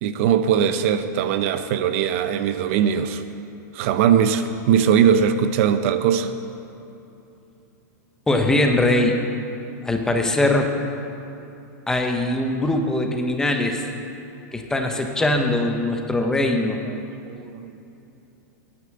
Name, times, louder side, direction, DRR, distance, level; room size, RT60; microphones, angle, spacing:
voice 1, 0.0-3.2 3.7-6.3 16.9-17.0 17.3-17.7, right 8 dB, 45° right, 10 dB, 0.6 m, -20 dB
voice 2, 8.3-9.2 9.8-10.7 11.9-13.9 14.5-16.8, left 1 dB, 5° left, 4 dB, 0.8 m, -21 dB
9.7 x 9.1 x 7.6 m, 2.8 s
supercardioid pair, 155°, 10 cm